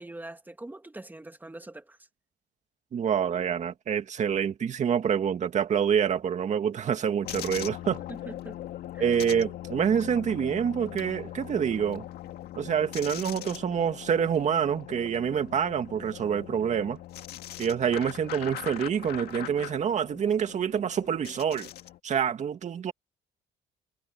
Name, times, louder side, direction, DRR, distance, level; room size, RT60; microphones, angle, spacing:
voice 1, 0.0-2.0 8.1-8.6 8.9-9.1, right 2 dB, 10° right, 1.8 m, -43 dB
voice 2, 2.9-8.0 9.0-12.0 12.6-17.0 17.6-21.7 22.0-22.9, right 8 dB, 45° right, 2.2 m, -27 dB
sound 1, 7.2-22.0, left 13 dB, 70° left, 1.7 m, -41 dB
cardioid pair, 110°, 17 cm